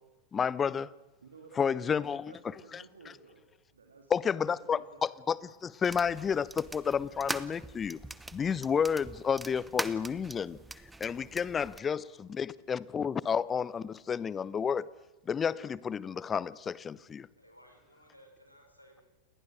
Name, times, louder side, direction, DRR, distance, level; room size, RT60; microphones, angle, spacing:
voice 1, 0.3-0.9 1.6-2.2 2.7-2.8 4.1-4.8 5.3-8.0 8.3-10.6 11.0-14.9 15.3-17.3, left 7 dB, 20° left, 0.7 m, -31 dB
voice 2, 1.2-3.4 3.7-5.0, right 4 dB, 70° right, 3.2 m, -55 dB
sound 1, 5.8-11.8, right 2 dB, 5° right, 1.0 m, -42 dB
voice 3, 17.4-19.0, equal, 90° left, 5.6 m, -58 dB
29.0 x 20.5 x 6.6 m
figure-of-eight pair, 90°, 0 cm